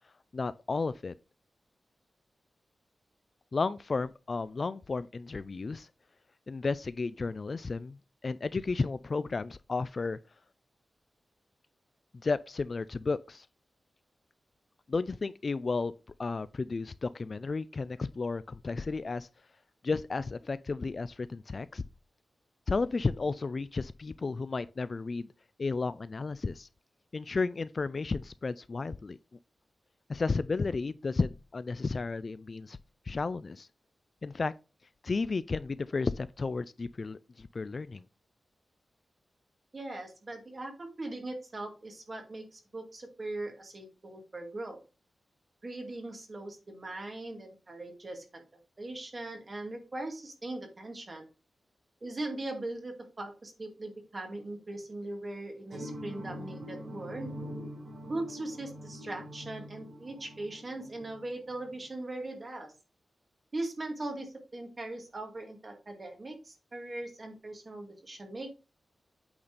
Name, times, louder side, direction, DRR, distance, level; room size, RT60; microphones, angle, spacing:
voice 1, 0.3-1.1 3.5-5.9 6.5-8.0 8.2-10.2 12.2-13.5 14.9-15.9 16.2-19.3 19.8-21.8 22.7-25.3 25.6-26.7 27.1-29.2 30.1-32.8 33.1-33.7 34.2-34.5 35.0-38.0, left 4 dB, 40° left, 0.3 m, -33 dB
voice 2, 39.7-44.8 45.6-48.4 48.8-51.3 52.0-57.4 58.1-62.7 63.5-68.5, right 2 dB, 30° right, 2.2 m, -40 dB
sound 1, 55.7-61.9, equal, 80° right, 4.1 m, -44 dB
8.6 x 4.2 x 5.1 m
wide cardioid pair, 170°, 0 cm